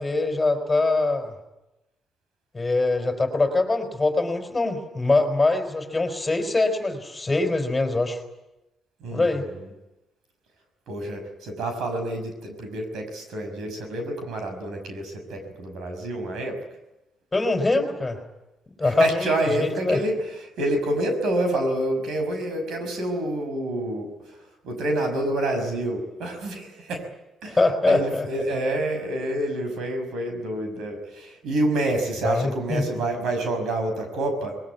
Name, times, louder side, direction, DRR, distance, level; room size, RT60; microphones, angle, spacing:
voice 1, 0.0-1.3 2.5-8.2 9.1-9.5 17.3-18.2 18.8-20.0 27.5-28.3 32.2-32.8, left 2 dB, 15° left, 5 dB, 4.7 m, -23 dB
voice 2, 9.0-9.7 10.9-16.6 18.8-24.4 24.6-27.1 27.4-27.6 27.9-34.6, right 1 dB, 75° right, 6 dB, 5.8 m, -28 dB
21.5 x 21.0 x 9.5 m, 0.96 s
cardioid pair, 90°, 0 cm